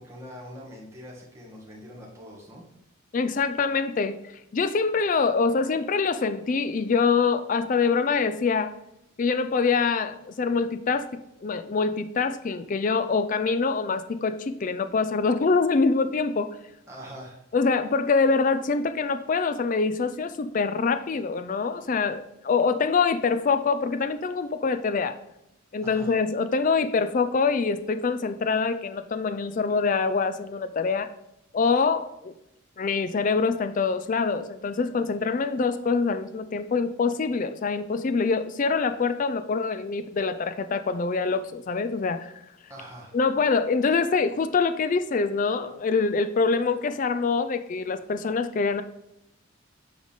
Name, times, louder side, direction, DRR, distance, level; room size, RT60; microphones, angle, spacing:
voice 1, 0.0-2.7 16.9-17.4 25.8-26.1 42.7-43.1, equal, 15° right, -4 dB, 1.9 m, -43 dB
voice 2, 3.1-4.2 4.5-8.7 9.2-11.1 11.4-16.6 17.5-25.2 25.7-31.1 31.5-32.3 32.8-42.3 43.1-48.8, left 4 dB, 40° left, 11 dB, 0.3 m, -25 dB
9.5 x 3.9 x 3.6 m, 0.83 s
head